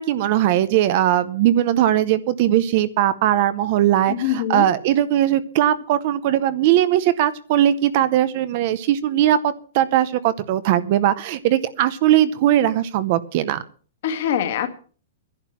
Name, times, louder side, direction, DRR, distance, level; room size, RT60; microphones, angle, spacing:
voice 1, 0.0-13.6, right 12 dB, 35° right, 14 dB, 0.7 m, -19 dB
voice 2, 4.1-4.7 14.0-14.7, left 10 dB, 45° left, 6 dB, 1.8 m, -23 dB
11.0 x 9.4 x 7.2 m, 0.42 s
hypercardioid pair, 180°, 0 cm